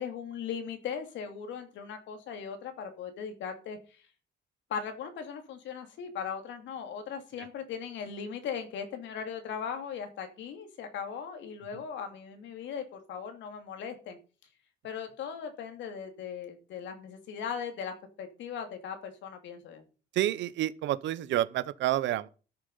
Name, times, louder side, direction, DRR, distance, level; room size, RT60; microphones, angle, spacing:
voice 1, 0.0-4.0 4.7-14.2 14.8-19.8, left 7 dB, 75° left, 2.8 m, -38 dB
voice 2, 20.1-22.3, right 13 dB, 75° right, 0.9 m, -29 dB
13.0 x 7.1 x 5.6 m
cardioid pair, 155°, 19 cm